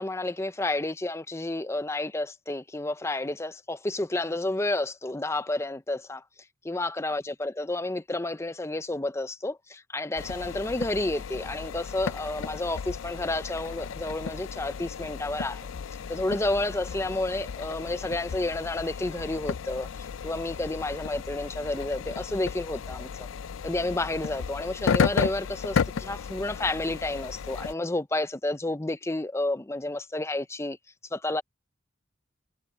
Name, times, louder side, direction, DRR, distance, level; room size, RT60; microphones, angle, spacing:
voice 1, 0.0-6.2 6.6-15.7 16.1-23.3 23.6-30.8 31.1-31.4, left 2 dB, 15° left, 0.5 m, -30 dB
sound 1, 10.2-27.7, left 6 dB, 90° left, 0.4 m, -33 dB
head